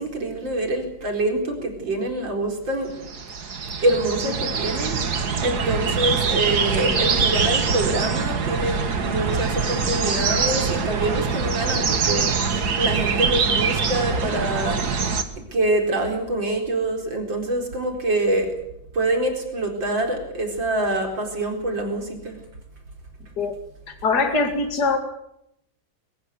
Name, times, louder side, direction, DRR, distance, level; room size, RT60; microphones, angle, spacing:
voice 1, 0.0-2.9 3.8-15.1 15.5-18.5 18.9-22.4, right 1 dB, 75° right, 3 dB, 5.0 m, -25 dB
sound 1, 3.0-15.2, right 5 dB, 55° right, 2.2 m, -24 dB
voice 2, 24.0-25.0, left 4 dB, 55° left, 4 dB, 2.9 m, -22 dB
22.5 x 18.0 x 8.5 m, 0.78 s
omnidirectional pair, 2.1 m